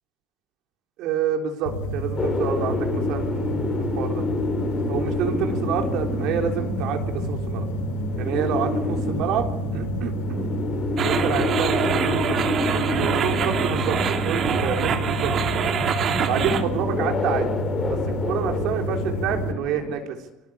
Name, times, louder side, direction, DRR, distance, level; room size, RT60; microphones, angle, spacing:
voice 1, 1.0-4.2 4.9-7.7 8.2-10.5 11.0-15.3 16.3-17.5 17.9-18.0 18.2-20.2, right 8 dB, 70° right, 3 dB, 3.6 m, -28 dB
sound 1, 1.7-19.5, equal, 85° left, 1.7 m, -29 dB
sound 2, 2.2-19.9, left 3 dB, 30° left, 4.8 m, -29 dB
sound 3, 11.0-16.6, right 7 dB, 55° right, 2.7 m, -25 dB
22.5 x 19.5 x 7.2 m, 1.0 s
hypercardioid pair, 75°, 0 cm